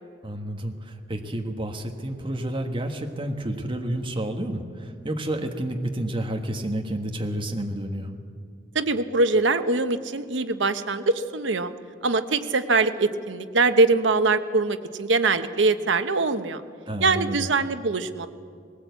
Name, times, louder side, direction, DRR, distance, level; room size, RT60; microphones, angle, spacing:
voice 1, 0.2-8.1 16.9-17.5, right 1 dB, 30° right, 3 dB, 1.5 m, -30 dB
voice 2, 8.7-11.7 12.0-16.6 17.0-18.3, right 3 dB, 85° right, 10 dB, 1.0 m, -23 dB
20.0 x 18.5 x 8.2 m, 2.2 s
head